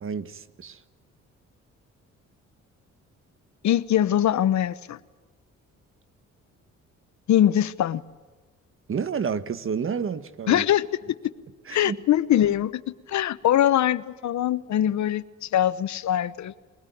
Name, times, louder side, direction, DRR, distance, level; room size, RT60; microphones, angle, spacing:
voice 1, 0.0-0.8 8.9-10.6 11.6-12.0, right 6 dB, 45° right, 1.4 m, -30 dB
voice 2, 3.6-5.0 7.3-8.0 10.5-10.9 11.7-12.8 13.1-16.5, left 11 dB, 65° left, 1.0 m, -22 dB
22.5 x 21.0 x 9.3 m
cardioid pair, 90°, 30 cm